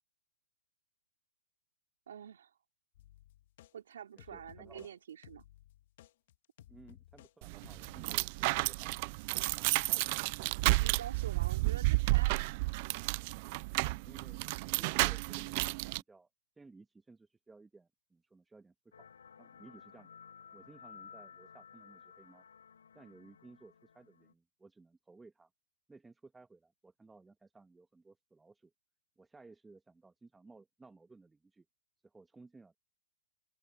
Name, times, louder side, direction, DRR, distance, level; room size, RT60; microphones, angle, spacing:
voice 1, 2.1-2.5 3.7-5.5 10.8-12.6, right 9 dB, 75° right, 2.9 m, -47 dB
sound 1, 2.9-3.7 4.2-4.9 5.2-7.3 7.6-8.0, left 13 dB, 55° left, 1.6 m, -58 dB
voice 2, 4.1-4.9 6.7-9.0 9.6-10.3 13.7-14.4 14.8-16.3 16.6-19.1 19.4-20.1 20.5-22.4 22.9-25.5 25.9-28.7 29.2-31.7 32.0-32.8, right 3 dB, 10° right, 1.6 m, -58 dB
sound 2, 7.4-16.0, right 25 dB, 40° right, 0.3 m, -32 dB
sound 3, 18.9-24.3, left 7 dB, 85° left, 4.0 m, -55 dB
open air
hypercardioid pair, 135°, 0 cm